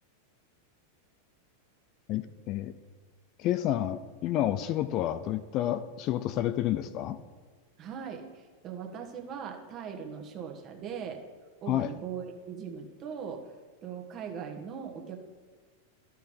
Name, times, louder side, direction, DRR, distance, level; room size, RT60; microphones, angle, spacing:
voice 1, 2.1-2.7 3.4-7.2 11.7-11.9, left 12 dB, 40° left, 12 dB, 0.4 m, -30 dB
voice 2, 7.8-11.2 11.6-13.5 13.8-15.2, right 7 dB, 35° right, 3 dB, 1.3 m, -40 dB
13.0 x 4.6 x 3.8 m, 1.5 s
figure-of-eight pair, 90°, 0 cm